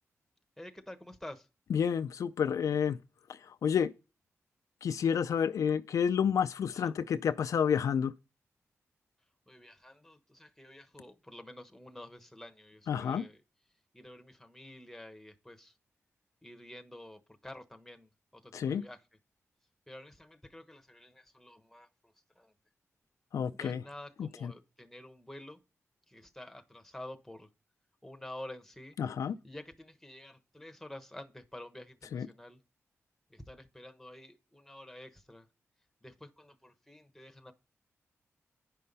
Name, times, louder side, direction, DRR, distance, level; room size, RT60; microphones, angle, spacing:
voice 1, 0.6-1.5 6.7-6.9 9.5-13.4 13.9-15.7 16.4-19.0 19.9-22.5 23.5-25.6 26.1-27.5 28.0-29.0 29.4-32.6 33.3-35.5 36.0-37.5, left 1 dB, 5° left, 1.1 m, -49 dB
voice 2, 1.7-3.0 3.3-3.9 4.8-8.1 12.9-13.3 18.5-18.8 23.3-23.8 24.2-24.5 29.0-29.4 32.1-32.3, left 7 dB, 80° left, 0.4 m, -30 dB
9.4 x 5.6 x 5.3 m
wide cardioid pair, 95°, 5 cm